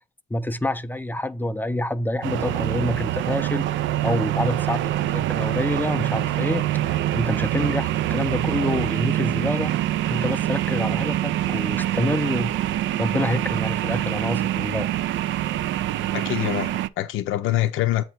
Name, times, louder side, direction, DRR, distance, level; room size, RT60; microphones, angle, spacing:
voice 1, 0.3-3.7 4.0-6.6 6.9-9.7 10.1-12.5 13.0-14.9, left 1 dB, 10° left, 0.5 m, -27 dB
sound 1, 2.2-16.9, right 13 dB, 75° right, 0.4 m, -25 dB
voice 2, 16.1-18.0, left 14 dB, 90° left, 0.5 m, -25 dB
7.7 x 2.8 x 5.6 m
cardioid pair, 90°, 20 cm